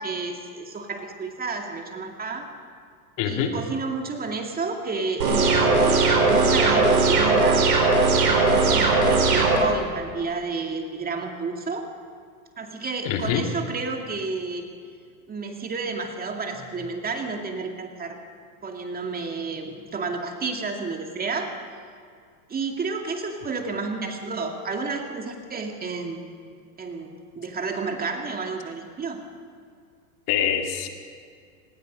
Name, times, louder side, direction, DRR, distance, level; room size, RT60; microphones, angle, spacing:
voice 1, 0.0-2.5 3.2-7.7 8.0-11.9 12.6-14.7 15.3-18.2 18.6-21.5 22.5-26.2 26.8-29.2, right 4 dB, 20° right, 3 dB, 2.3 m, -31 dB
voice 2, 3.2-3.5 13.0-13.5 30.3-30.9, left 9 dB, 45° left, 3 dB, 2.6 m, -24 dB
sound 1, 5.2-9.6, right 3 dB, 85° right, 5.3 m, -19 dB
25.0 x 20.0 x 5.3 m, 2.2 s
hypercardioid pair, 110°, 46 cm